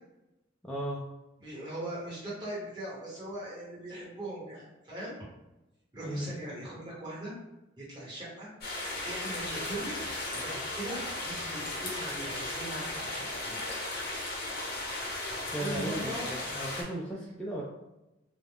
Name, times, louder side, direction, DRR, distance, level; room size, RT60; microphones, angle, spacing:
voice 1, 0.6-1.0 6.0-6.3 15.5-17.6, right 1 dB, 5° left, -6 dB, 0.3 m, -36 dB
voice 2, 1.4-5.2 5.9-7.3 7.8-8.5 9.0-10.0 10.3-13.6 15.5-16.3, right 1 dB, 25° right, -8 dB, 1.2 m, -40 dB
sound 1, 8.6-16.8, left 2 dB, 55° left, 0.7 m, -36 dB
2.3 x 2.0 x 3.4 m, 0.97 s
head